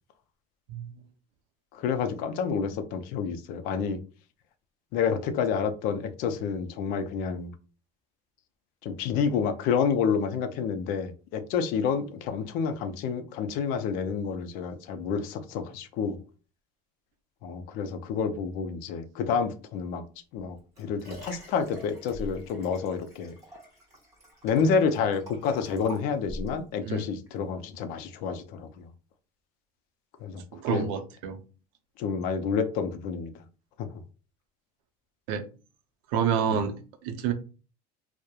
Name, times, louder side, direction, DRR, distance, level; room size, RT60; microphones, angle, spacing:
voice 1, 1.7-4.0 4.9-7.5 8.8-16.2 17.4-20.0 20.3-23.3 24.4-28.8 30.2-30.4 30.7-30.9 32.0-33.3 33.8-33.9 36.5-36.6, left 6 dB, 60° left, 0.4 m, -29 dB
Liquid, 20.3-26.6 27.3-27.4, equal, 20° right, 1.2 m, -44 dB
voice 2, 30.5-31.4 35.3-35.4 36.1-36.8 37.0-37.3, right 7 dB, 80° right, 0.5 m, -28 dB
2.9 x 2.0 x 2.3 m
cardioid pair, 165°, 17 cm